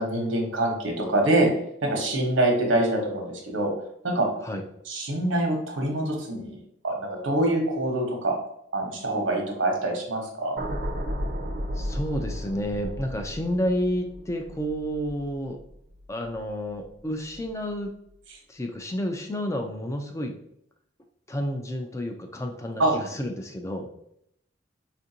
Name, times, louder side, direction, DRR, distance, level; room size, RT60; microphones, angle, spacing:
voice 1, 0.0-1.5 1.8-3.7 4.0-4.3 4.9-6.6 6.8-8.3 8.7-10.6 22.8-23.0, right 1 dB, 90° right, 1 dB, 1.0 m, -25 dB
sound 1, 10.6-16.9 17.2-17.5, equal, 50° right, 0.5 m, -34 dB
voice 2, 11.7-15.6 16.1-17.9 18.5-20.3 21.3-23.9, equal, 15° left, 4 dB, 0.3 m, -30 dB
4.4 x 2.5 x 2.8 m, 0.73 s
head